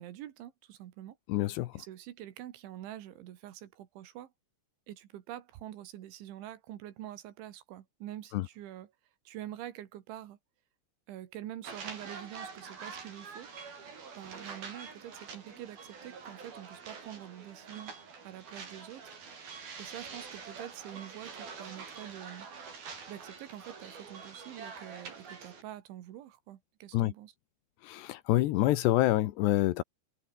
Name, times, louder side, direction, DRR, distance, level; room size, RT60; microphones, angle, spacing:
voice 1, 0.0-1.2 1.7-4.3 4.9-8.9 9.3-10.4 11.1-13.5 14.2-17.9 18.2-19.2 19.8-22.5 23.1-27.3, right 12 dB, 75° right, 4.1 m, -46 dB
voice 2, 1.3-1.8 8.3-8.5 26.9-27.1 27.8-29.8, left 16 dB, 75° left, 2.8 m, -27 dB
sound 1, 11.6-25.6, right 5 dB, 50° right, 7.0 m, -46 dB
omnidirectional pair, 5.5 m